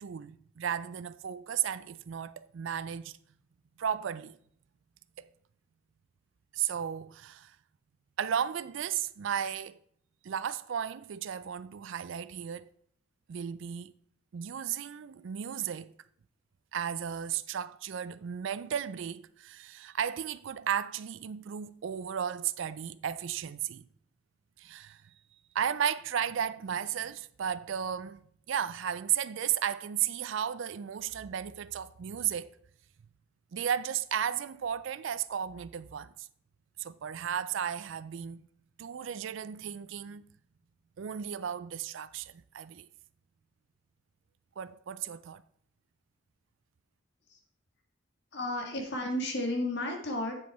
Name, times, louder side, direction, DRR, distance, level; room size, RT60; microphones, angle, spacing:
voice 1, 0.0-3.1 3.8-4.4 5.2-5.3 6.5-7.6 8.2-9.8 10.2-12.7 13.3-13.9 14.3-15.9 16.7-23.8 24.6-25.0 25.5-32.5 33.5-36.3 36.8-38.5 38.8-40.2 41.0-42.9 44.6-45.4, right 9 dB, 60° right, 0.4 m, -34 dB
voice 2, 48.3-50.4, left 1 dB, 55° left, 1.9 m, -33 dB
7.6 x 7.4 x 4.2 m
head